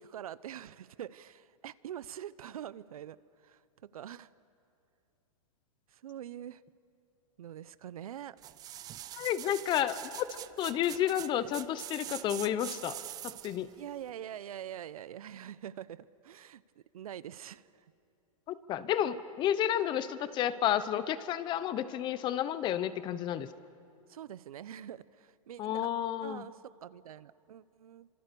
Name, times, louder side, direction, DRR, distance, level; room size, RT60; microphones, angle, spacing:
voice 1, 0.0-3.2 3.4-4.3 5.9-6.6 7.4-8.4 13.8-17.8 24.1-25.8 26.2-28.1, right 10 dB, 80° right, 17 dB, 0.8 m, -45 dB
sound 1, 8.4-13.6 14.1-14.2, right 13 dB, 20° right, 0.5 m, -44 dB
voice 2, 9.1-13.0 13.2-13.7 18.5-23.5 25.6-26.4, left 11 dB, 25° left, 15 dB, 0.9 m, -31 dB
28.0 x 25.5 x 6.9 m, 2.6 s
hypercardioid pair, 145°, 18 cm